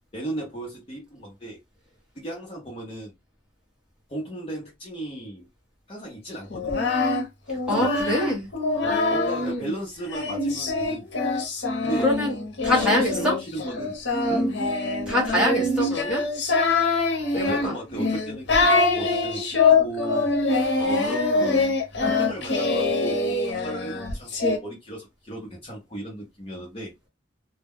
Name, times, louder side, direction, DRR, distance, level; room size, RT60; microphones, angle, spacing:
voice 1, 0.1-1.6 2.1-3.1 4.1-5.5 5.9-6.9 7.7-7.9 9.1-11.1 11.8-12.1 12.6-14.0 14.3-14.5 17.3-20.3 20.9-21.6 22.0-26.9, right 1 dB, 30° left, 0.7 m, -36 dB
Singing, 6.5-9.5 10.1-24.6, left 3 dB, 80° left, 0.8 m, -24 dB
voice 2, 7.5-8.5 8.8-9.7 12.0-12.3 12.6-13.4 14.4-14.6 15.1-16.2 17.3-17.7 20.7-21.6, left 1 dB, 5° right, 1.1 m, -26 dB
2.2 x 2.1 x 3.5 m
head